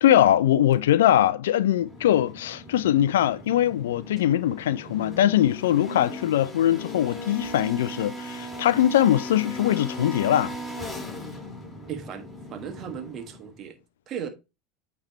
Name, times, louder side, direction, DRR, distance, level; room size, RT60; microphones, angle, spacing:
voice 1, 0.0-10.6, left 11 dB, 75° left, 0.4 m, -21 dB
sound 1, 1.7-13.6, equal, 5° left, 4.2 m, -38 dB
voice 2, 11.9-13.8 14.1-14.3, right 8 dB, 45° right, 1.4 m, -36 dB
8.9 x 3.4 x 4.1 m
hypercardioid pair, 80°, 0 cm